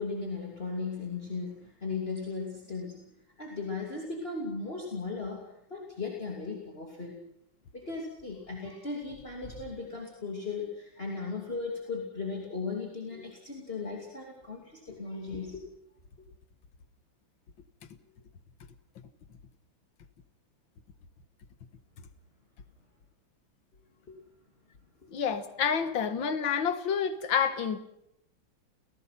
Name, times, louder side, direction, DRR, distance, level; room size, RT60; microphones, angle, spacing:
voice 1, 0.0-3.0 3.4-7.2 7.7-15.7 24.1-24.2, left 4 dB, 30° left, -1 dB, 3.0 m, -37 dB
voice 2, 25.1-27.8, left 7 dB, 80° left, 11 dB, 2.2 m, -28 dB
30.0 x 17.5 x 5.9 m, 0.79 s
omnidirectional pair, 2.1 m